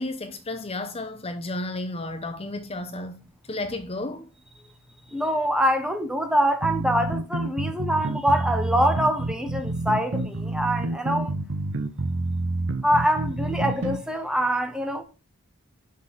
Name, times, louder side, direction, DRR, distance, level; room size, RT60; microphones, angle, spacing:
voice 1, 0.0-3.2 3.5-4.3, left 2 dB, 25° left, 0.8 m, -32 dB
voice 2, 5.1-11.3 12.8-15.0, equal, 5° right, 1.0 m, -24 dB
sound 1, 6.6-14.0, right 2 dB, 60° right, 0.9 m, -28 dB
6.4 x 5.5 x 5.8 m
head